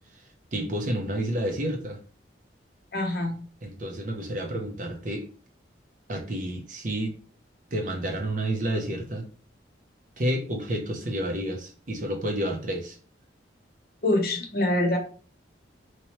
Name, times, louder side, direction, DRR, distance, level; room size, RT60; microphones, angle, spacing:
voice 1, 0.5-2.0 3.6-5.2 6.1-7.1 7.7-9.2 10.2-13.0, right 1 dB, 45° right, 3 dB, 0.7 m, -30 dB
voice 2, 2.9-3.4 14.0-15.0, left 1 dB, 55° left, 3 dB, 0.7 m, -25 dB
3.0 x 2.8 x 3.0 m, 0.40 s
head